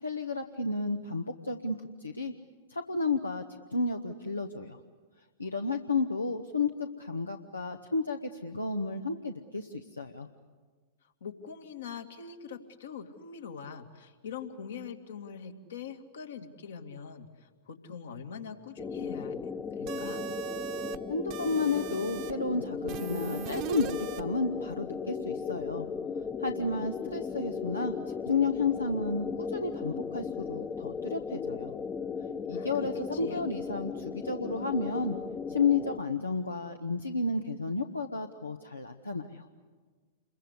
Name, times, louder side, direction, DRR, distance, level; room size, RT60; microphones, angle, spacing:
voice 1, 0.0-2.3 2.7-4.8 5.4-10.3 21.1-25.9 26.4-27.9 28.3-31.7 32.5-35.2 35.5-39.4, left 3 dB, 90° left, 4 dB, 1.0 m, -32 dB
voice 2, 11.0-19.4 19.7-20.2 32.5-33.4, left 6 dB, 70° left, 5 dB, 2.1 m, -43 dB
sound 1, 18.8-36.0, left 6 dB, 20° left, 1.0 m, -37 dB
sound 2, 19.9-21.0 21.3-22.3 22.9-24.2, right 8 dB, 45° right, 1.3 m, -38 dB
28.0 x 22.5 x 8.2 m, 1.5 s
figure-of-eight pair, 100°, 0 cm